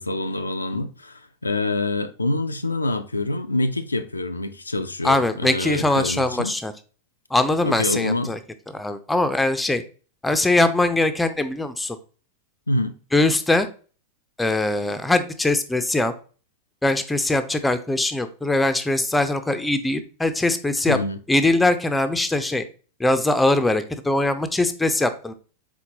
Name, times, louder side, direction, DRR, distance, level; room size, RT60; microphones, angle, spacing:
voice 1, 0.0-6.5 7.6-8.3 12.7-12.9 20.9-21.2, left 2 dB, 80° left, 0.3 m, -26 dB
voice 2, 5.0-6.7 7.3-8.4 8.7-9.8 10.2-12.0 13.1-13.7 14.4-16.1 16.8-21.0 21.3-22.6 23.0-25.3, left 2 dB, 5° left, 0.4 m, -21 dB
4.4 x 3.9 x 2.8 m
figure-of-eight pair, 90°, 0 cm